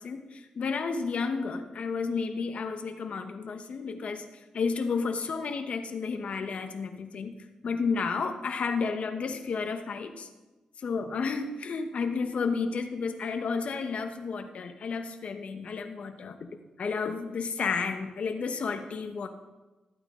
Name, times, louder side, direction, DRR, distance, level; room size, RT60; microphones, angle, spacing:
voice 1, 0.0-4.2 4.5-7.3 7.6-10.3 10.8-16.5 16.8-19.3, left 5 dB, 65° left, 7 dB, 1.1 m, -32 dB
14.0 x 9.0 x 3.8 m, 1.1 s
cardioid pair, 80°, 2 cm